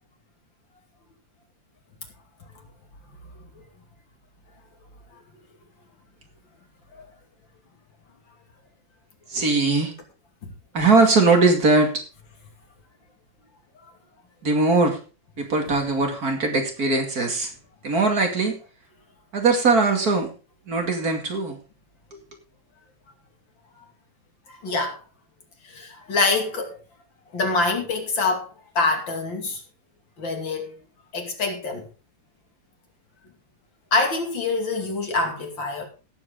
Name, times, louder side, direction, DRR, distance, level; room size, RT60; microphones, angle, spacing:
voice 1, 9.3-9.9 10.7-12.0 14.4-15.0 15.4-17.5 17.8-18.6 19.3-20.3 20.7-21.6 22.1-22.2, right 3 dB, 50° right, 2.7 m, -20 dB
voice 2, 24.5-25.0 25.6-26.8 27.3-28.5 28.7-29.6 30.2-30.7 31.1-31.9 33.9-35.9, left 3 dB, 75° left, 3.2 m, -25 dB
17.0 x 7.9 x 3.8 m
omnidirectional pair, 2.1 m